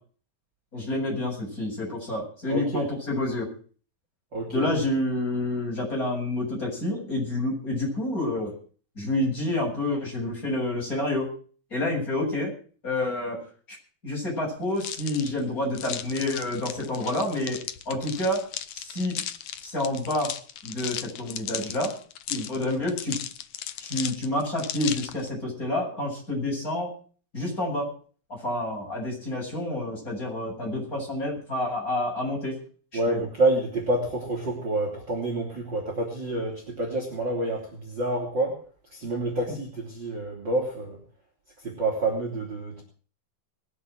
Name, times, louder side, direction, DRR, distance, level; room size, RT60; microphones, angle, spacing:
voice 1, 0.7-3.5 4.5-8.5 9.0-11.3 11.7-12.5 12.8-13.4 13.7-13.8 14.0-17.6 17.8-18.4 18.7-19.2 19.6-20.3 20.6-21.9 22.3-23.2 23.8-26.9 27.3-27.9 28.4-32.6 32.9-33.2, left 1 dB, 20° left, -2 dB, 8.4 m, -28 dB
voice 2, 2.5-2.9 4.3-4.7 32.9-38.6 38.9-41.0 41.6-42.8, right 2 dB, 30° right, 0 dB, 3.8 m, -28 dB
sound 1, 14.8-25.3, left 10 dB, 80° left, 1.4 m, -36 dB
21.5 x 7.9 x 7.8 m, 0.43 s
omnidirectional pair, 4.2 m